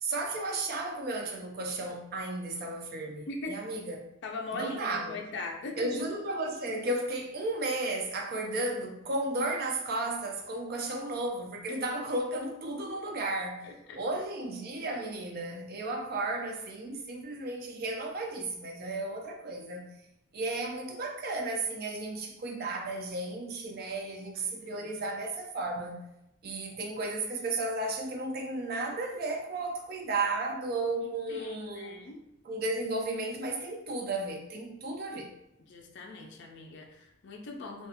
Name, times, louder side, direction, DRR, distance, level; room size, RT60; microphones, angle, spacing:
voice 1, 0.0-4.1 4.5-5.2 5.8-13.7 13.9-19.9 20.3-26.1 26.4-32.0 32.4-35.3, right 2 dB, 45° right, 0.4 m, -34 dB
voice 2, 4.2-6.0 13.6-14.0 24.3-25.0 31.3-32.2 35.6-37.9, left 3 dB, 55° left, 0.4 m, -41 dB
2.4 x 2.2 x 2.7 m
head